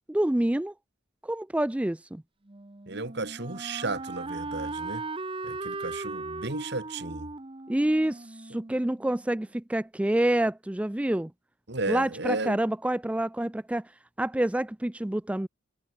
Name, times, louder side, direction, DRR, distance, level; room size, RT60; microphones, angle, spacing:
voice 1, 0.1-0.7 1.2-2.2 7.7-11.3 11.9-13.9 14.2-15.5, right 1 dB, 5° right, 0.3 m, -27 dB
Wind instrument woodwind instrument, 2.5-9.3, right 3 dB, 25° right, 0.9 m, -38 dB
voice 2, 2.9-5.0 5.4-7.3 11.7-12.6, right 3 dB, 60° right, 2.6 m, -33 dB
head